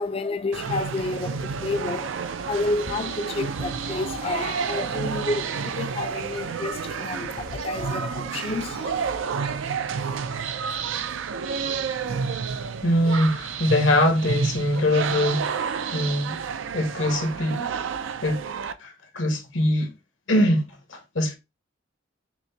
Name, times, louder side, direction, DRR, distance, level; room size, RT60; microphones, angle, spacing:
voice 1, 0.0-9.2, left 3 dB, 30° left, 0.3 m, -30 dB
sound 1, 0.5-18.7, right 6 dB, 75° right, 0.4 m, -30 dB
voice 2, 12.8-16.4 16.7-17.7 18.2-18.4 18.8-19.9 20.3-20.6 20.9-21.3, left 1 dB, 75° left, 1.2 m, -23 dB
5.9 x 2.1 x 2.7 m
head